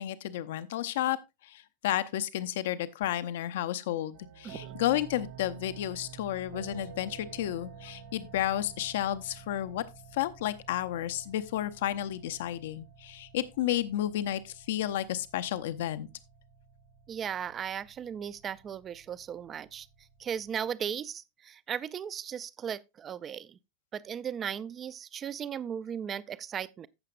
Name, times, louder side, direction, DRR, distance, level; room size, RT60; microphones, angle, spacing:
voice 1, 0.0-9.8 10.1-16.1, left 12 dB, 55° left, 0.7 m, -32 dB
sound 1, 4.1-20.6, right 7 dB, 50° right, 1.8 m, -50 dB
voice 2, 4.4-4.8 17.1-19.9 20.2-23.6 23.9-26.9, right 8 dB, 25° right, 0.5 m, -37 dB
15.0 x 6.6 x 2.4 m
figure-of-eight pair, 90°, 0 cm